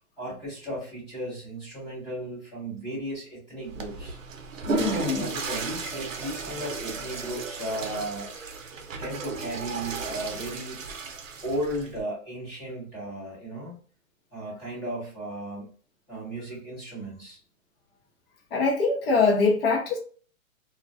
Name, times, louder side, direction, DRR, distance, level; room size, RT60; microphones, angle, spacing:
voice 1, 0.2-4.2 5.0-8.3 9.0-10.8 11.4-13.8 14.3-15.6 16.1-17.4, right 1 dB, 10° left, 0.8 m, -35 dB
Water / Toilet flush, 3.6-12.0, right 5 dB, 65° right, 0.7 m, -35 dB
voice 2, 4.7-5.4 18.5-20.0, left 4 dB, 45° left, 0.8 m, -23 dB
2.3 x 2.2 x 2.4 m
hypercardioid pair, 165°, 42 cm